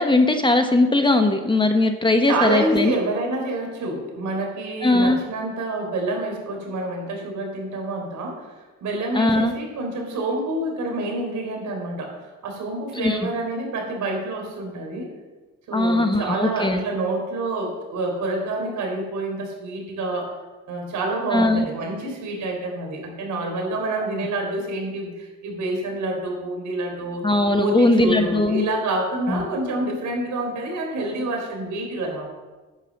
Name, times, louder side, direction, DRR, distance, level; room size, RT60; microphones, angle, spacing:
voice 1, 0.0-3.0 4.8-5.2 9.1-9.5 12.9-13.2 15.7-16.8 21.3-21.7 27.2-28.6 29.3-29.4, left 2 dB, 15° left, 6 dB, 1.1 m, -19 dB
voice 2, 2.3-8.5 8.8-15.1 15.7-20.3 20.7-27.2 27.5-32.3, right 2 dB, 75° right, 1 dB, 4.3 m, -27 dB
10.5 x 9.4 x 6.6 m, 1.2 s
cardioid pair, 90°, 30 cm